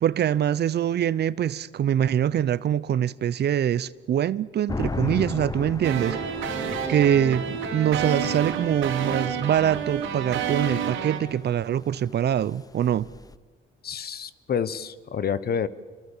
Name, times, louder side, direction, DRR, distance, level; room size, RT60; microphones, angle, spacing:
voice 1, 0.0-6.2 6.9-13.1, right 10 dB, 55° right, 0.7 m, -24 dB
sound 1, 4.7-13.4, left 3 dB, 20° left, 0.7 m, -37 dB
sound 2, 5.8-11.2, right 8 dB, 85° right, 3.6 m, -29 dB
voice 2, 13.8-15.7, left 7 dB, 50° left, 1.2 m, -28 dB
27.0 x 23.0 x 7.3 m
cardioid pair, 90°, 20 cm